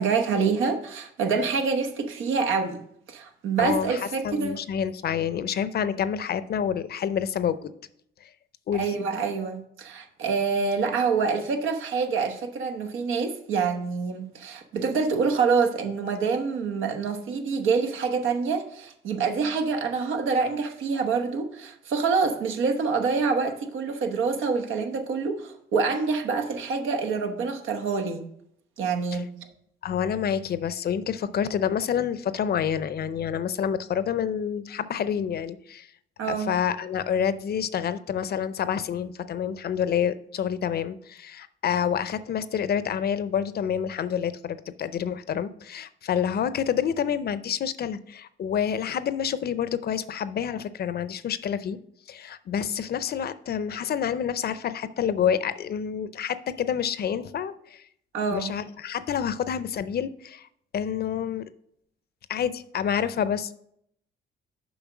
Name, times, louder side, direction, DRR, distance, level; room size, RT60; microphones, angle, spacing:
voice 1, 0.0-2.8 3.1-4.6 8.7-28.3 28.8-29.3 36.2-36.5 58.1-58.5, right 5 dB, 85° right, 1.1 m, -26 dB
voice 2, 3.6-7.7 8.2-8.3 8.7-8.9 29.1-29.2 29.8-35.9 36.3-51.8 52.1-57.8 58.3-60.5 60.7-61.5 62.3-63.6, left 8 dB, 50° left, 0.6 m, -28 dB
7.1 x 5.0 x 6.1 m
cardioid pair, 90°, 20 cm